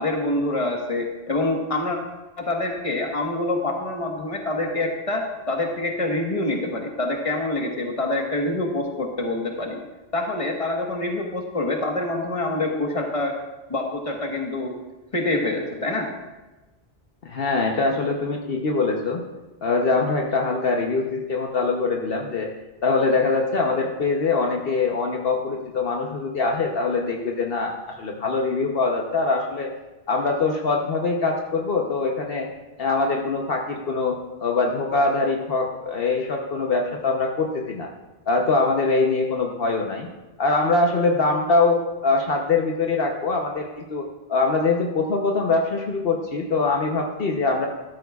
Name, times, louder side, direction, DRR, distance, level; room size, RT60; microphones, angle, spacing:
voice 1, 0.0-2.0 2.4-9.8 10.1-13.3 13.7-14.7 15.1-16.1, left 2 dB, 35° left, 1 dB, 1.4 m, -26 dB
voice 2, 17.2-19.2 19.6-22.5 22.8-29.7 30.1-32.5 32.8-37.9 38.3-40.1 40.4-47.7, left 3 dB, 65° left, 1 dB, 1.1 m, -23 dB
13.5 x 12.5 x 2.4 m, 1.1 s
omnidirectional pair, 1.0 m